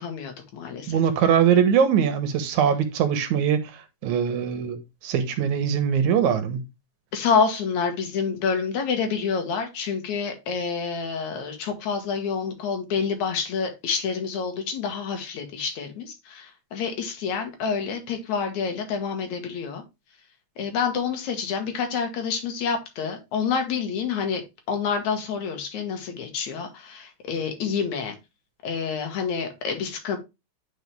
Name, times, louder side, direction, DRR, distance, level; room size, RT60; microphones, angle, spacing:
voice 1, 0.0-1.0 7.1-19.8 20.6-28.2 28.6-30.2, left 6 dB, 70° left, 2.7 m, -28 dB
voice 2, 0.9-6.6, right 8 dB, 75° right, 2.3 m, -22 dB
9.3 x 4.5 x 3.3 m
omnidirectional pair, 3.6 m